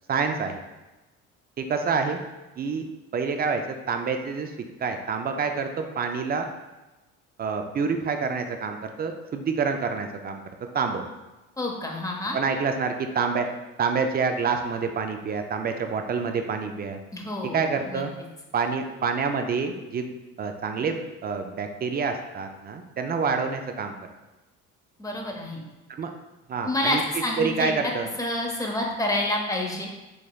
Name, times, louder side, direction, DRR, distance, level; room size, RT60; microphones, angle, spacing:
voice 1, 0.1-0.6 1.6-2.2 2.6-2.9 3.1-4.5 4.8-6.5 7.4-10.4 10.7-11.0 12.3-13.5 13.8-17.0 17.5-18.1 18.5-23.9 26.0-26.1 26.5-28.1, right 5 dB, 30° right, 5 dB, 0.4 m, -27 dB
voice 2, 11.6-12.4 17.1-18.0 25.0-25.6 26.6-27.9 28.2-29.9, left 1 dB, 10° left, 0 dB, 0.7 m, -28 dB
4.9 x 2.9 x 2.3 m, 1.1 s
supercardioid pair, 90°, 32 cm